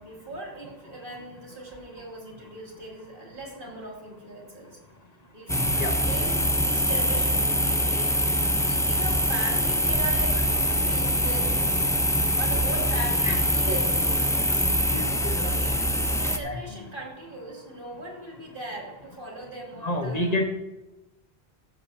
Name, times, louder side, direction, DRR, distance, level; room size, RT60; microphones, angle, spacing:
voice 1, 0.0-4.8 5.3-11.9 12.3-14.6 15.3-20.4, right 2 dB, 55° right, -3 dB, 3.0 m, -39 dB
voice 2, 5.5-5.9 13.2-13.8 14.9-15.6 16.4-16.9 19.8-20.4, left 1 dB, 40° left, 4 dB, 1.3 m, -30 dB
sound 1, 5.5-16.4, equal, 5° left, 0.6 m, -24 dB
14.0 x 12.0 x 2.8 m, 0.99 s
omnidirectional pair, 1.1 m